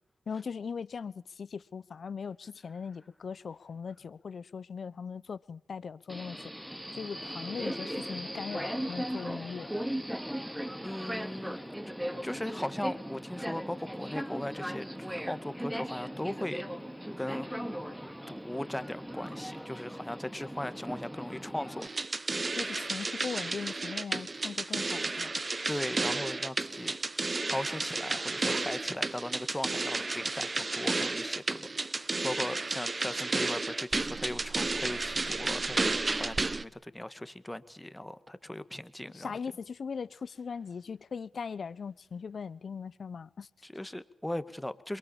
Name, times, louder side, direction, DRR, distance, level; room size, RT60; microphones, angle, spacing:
voice 1, 0.3-6.5 6.9-9.7 22.5-25.3 39.1-43.5, left 6 dB, 70° left, 1.0 m, -39 dB
Subway metro underground, 6.1-21.9, equal, 5° right, 2.6 m, -38 dB
voice 2, 10.8-11.6 12.2-16.6 17.2-17.5 18.3-21.9 25.7-26.9 27.5-39.3 43.6-45.0, left 1 dB, 10° left, 2.0 m, -38 dB
sound 1, 21.8-36.6, right 3 dB, 40° right, 1.2 m, -32 dB
28.0 x 23.5 x 7.3 m
cardioid pair, 45°, 0 cm